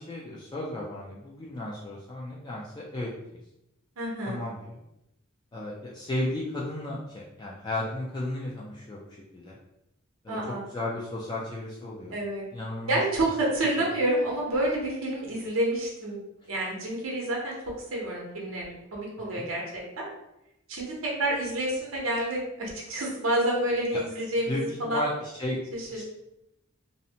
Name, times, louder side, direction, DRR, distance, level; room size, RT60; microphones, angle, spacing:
voice 1, 0.0-3.4 4.3-4.8 5.5-9.0 9.3-9.6 10.2-10.4 10.7-12.2 12.5-13.0 19.2-19.5 23.9-24.0 24.5-25.6 25.9-26.0, left 1 dB, 20° left, -5 dB, 0.3 m, -34 dB
voice 2, 4.0-4.4 10.3-10.6 12.1-12.4 12.9-16.2 16.5-20.1 20.7-25.0 25.7-26.0, right 1 dB, 80° right, -3 dB, 0.7 m, -29 dB
2.6 x 2.0 x 2.7 m, 0.85 s
head